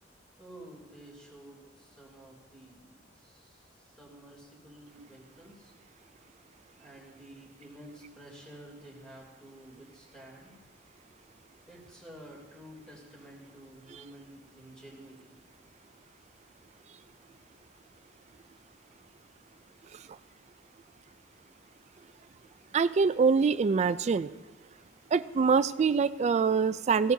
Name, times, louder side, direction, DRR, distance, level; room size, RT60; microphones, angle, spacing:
voice 1, 0.4-3.6 3.9-5.7 6.8-10.6 11.7-15.3, right 1 dB, 5° left, -2 dB, 3.0 m, -51 dB
voice 2, 22.7-24.3 25.1-27.1, right 5 dB, 35° right, 13 dB, 0.3 m, -24 dB
17.0 x 15.5 x 2.7 m, 1.2 s
head